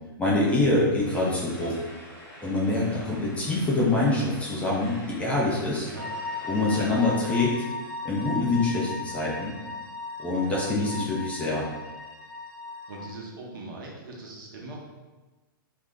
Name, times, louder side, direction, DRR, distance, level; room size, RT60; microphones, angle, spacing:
voice 1, 0.2-1.8 2.4-5.9 6.5-7.6 8.0-9.5 10.2-11.7, left 2 dB, 10° left, -5 dB, 0.5 m, -25 dB
voice 2, 0.8-1.2 2.8-3.1 5.9-6.1 6.7-7.0 10.4-10.6 12.9-14.8, right 2 dB, 65° right, -2 dB, 0.8 m, -41 dB
sound 1, 1.0-7.3, equal, 35° left, 1.1 m, -46 dB
sound 2, 6.0-13.1, left 3 dB, 30° right, 0.7 m, -37 dB
2.5 x 2.1 x 3.5 m, 1.2 s
hypercardioid pair, 135°, 12 cm